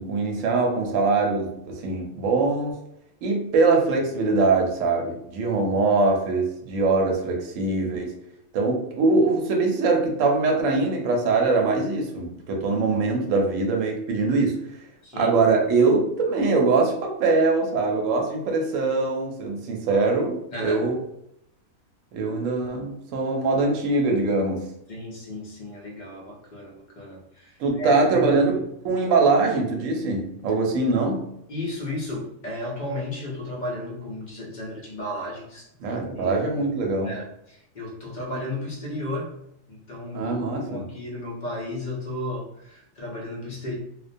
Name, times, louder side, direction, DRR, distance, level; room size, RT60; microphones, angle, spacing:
voice 1, 0.0-2.8 3.2-8.1 8.5-14.7 15.1-21.0 22.1-24.7 27.6-28.6 28.8-31.3 35.8-37.1 40.1-40.8, right 3 dB, 70° right, 1 dB, 0.9 m, -22 dB
voice 2, 15.0-15.4 20.5-20.9 24.9-28.5 31.5-36.7 37.0-39.4 39.7-43.7, left 1 dB, 65° left, -3 dB, 0.4 m, -34 dB
2.3 x 2.1 x 2.5 m, 0.77 s
omnidirectional pair, 1.5 m